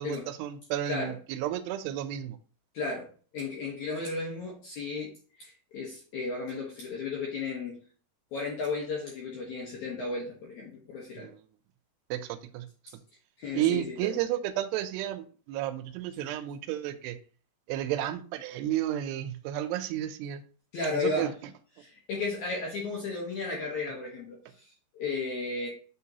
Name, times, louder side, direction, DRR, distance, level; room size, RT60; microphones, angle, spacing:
voice 1, 0.0-2.4 11.2-11.4 12.1-12.7 13.5-17.2 17.7-20.4 20.9-21.3, right 12 dB, 85° right, 2.6 m, -32 dB
voice 2, 0.8-1.1 2.7-3.1 3.3-5.1 5.4-7.8 8.3-11.3 13.4-14.2 20.7-21.3 21.8-25.7, left 3 dB, 70° left, 1.8 m, -34 dB
8.7 x 3.8 x 2.8 m
omnidirectional pair, 4.9 m